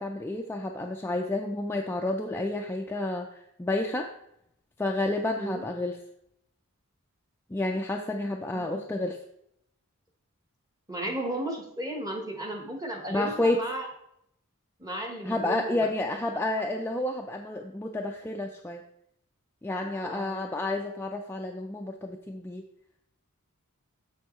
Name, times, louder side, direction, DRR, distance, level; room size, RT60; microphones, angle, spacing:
voice 1, 0.0-4.1 4.8-6.0 7.5-9.2 13.1-13.7 15.2-18.8 19.6-22.6, left 2 dB, 10° left, 2 dB, 0.3 m, -30 dB
voice 2, 5.3-5.6 8.5-8.9 10.9-13.9 14.8-15.9 20.0-20.4, right 1 dB, 15° right, 2 dB, 1.1 m, -35 dB
7.0 x 6.4 x 3.1 m, 0.77 s
head